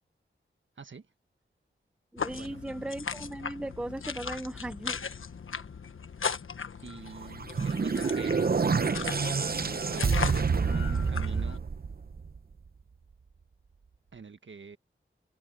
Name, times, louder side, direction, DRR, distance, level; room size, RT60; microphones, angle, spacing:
voice 1, 2.1-5.0 8.0-8.2, right 1 dB, 5° right, 0.4 m, -37 dB
sound 1, 2.2-11.6, left 6 dB, 80° left, 1.3 m, -38 dB
voice 2, 6.8-8.5 9.9-11.6 14.1-14.8, right 4 dB, 65° right, 1.5 m, -44 dB
sound 2, 7.2-12.5, right 5 dB, 45° right, 0.8 m, -28 dB
wide cardioid pair, 110°, 21 cm